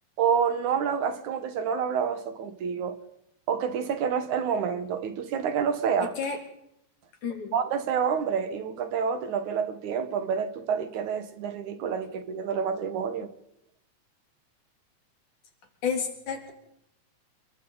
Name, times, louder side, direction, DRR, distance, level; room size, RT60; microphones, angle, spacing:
voice 1, 0.2-3.0 3.5-6.1 7.5-13.3, right 7 dB, 85° right, 2.9 m, -28 dB
voice 2, 6.0-6.4 7.2-7.5 15.8-16.5, left 6 dB, 85° left, 4.9 m, -31 dB
28.5 x 22.5 x 4.1 m
omnidirectional pair, 3.3 m